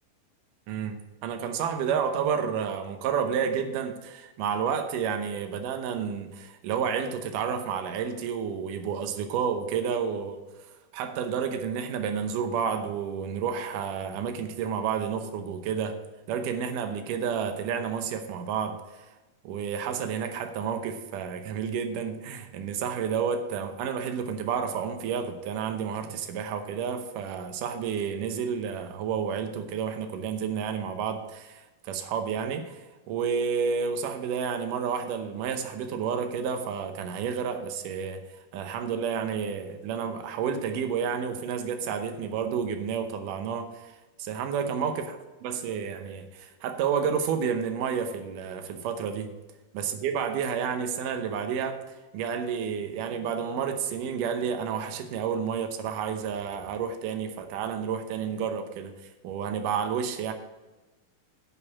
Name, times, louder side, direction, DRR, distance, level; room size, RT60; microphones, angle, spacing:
voice 1, 0.7-10.4 10.9-16.0 16.3-19.1 19.4-38.3 38.5-45.1 45.4-49.3 49.7-51.8 52.1-58.9 59.2-60.3, right 7 dB, 80° right, 7 dB, 2.4 m, -30 dB
9.8 x 5.3 x 7.1 m, 1.1 s
omnidirectional pair, 3.8 m